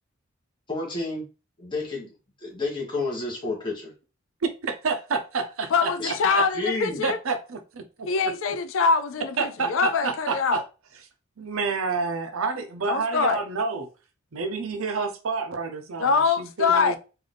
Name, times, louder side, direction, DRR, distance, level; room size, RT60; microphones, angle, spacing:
voice 1, 0.7-1.3 1.6-2.1 2.4-3.9 6.0-6.1 6.5-7.1, left 3 dB, 25° left, 1.4 m, -30 dB
voice 2, 4.4-6.5 7.0-8.1 9.4-10.6 11.4-13.9 14.3-17.0, right 4 dB, 85° right, 0.7 m, -29 dB
voice 3, 5.7-7.2 8.1-10.6 12.9-13.4 16.0-17.0, left 5 dB, 75° left, 0.4 m, -24 dB
3.9 x 2.6 x 3.4 m
head